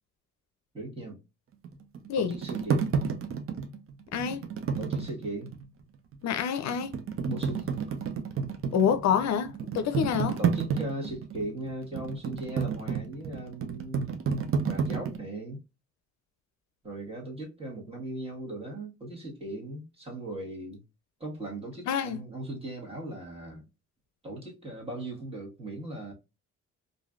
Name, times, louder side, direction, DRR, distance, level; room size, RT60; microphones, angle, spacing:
voice 1, 0.7-1.2 2.1-2.9 4.8-5.5 7.3-7.7 9.9-10.0 10.4-14.1 14.6-15.6 16.8-20.8 21.2-23.7 24.2-26.1, right 2 dB, 20° right, 1.5 m, -38 dB
sound 1, 1.6-5.7 6.1-6.2 6.7-15.2, right 6 dB, 45° right, 0.6 m, -31 dB
voice 2, 6.2-6.9 8.7-10.4 21.9-22.2, left 7 dB, 65° left, 0.5 m, -27 dB
3.1 x 2.6 x 2.4 m
cardioid pair, 90°, 30 cm